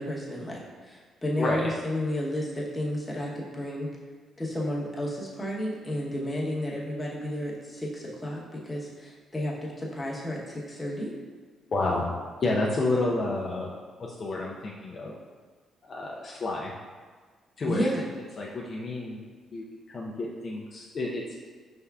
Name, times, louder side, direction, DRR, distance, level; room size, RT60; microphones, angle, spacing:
voice 1, 0.0-3.9 4.4-11.1 17.6-18.0, left 1 dB, 15° left, -4 dB, 1.0 m, -32 dB
voice 2, 1.4-1.7 11.7-12.1 12.4-13.7 14.0-15.1 15.8-16.7 17.6-17.9 18.4-19.2 19.5-21.4, left 2 dB, 45° left, -3 dB, 0.5 m, -30 dB
5.4 x 3.4 x 2.3 m, 1.5 s
cardioid pair, 90°, 0 cm